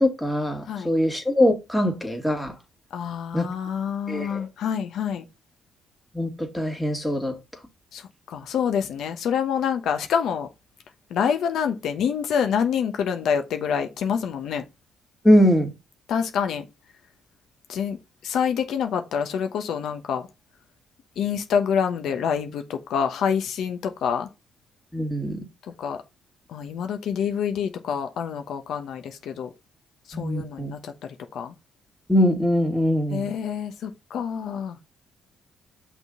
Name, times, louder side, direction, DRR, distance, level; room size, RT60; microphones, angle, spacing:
voice 1, 0.0-2.5 3.3-3.5 4.1-4.5 6.1-7.4 15.2-15.7 24.9-25.4 30.1-30.7 32.1-33.3, equal, 5° left, 2.1 m, -22 dB
voice 2, 2.9-5.2 7.9-10.5 11.1-14.6 16.1-16.6 17.7-20.3 21.2-24.3 25.6-26.0 26.5-29.5 30.1-31.5 33.1-34.8, left 7 dB, 75° left, 0.9 m, -27 dB
6.1 x 3.7 x 5.4 m
cardioid pair, 90°, 0 cm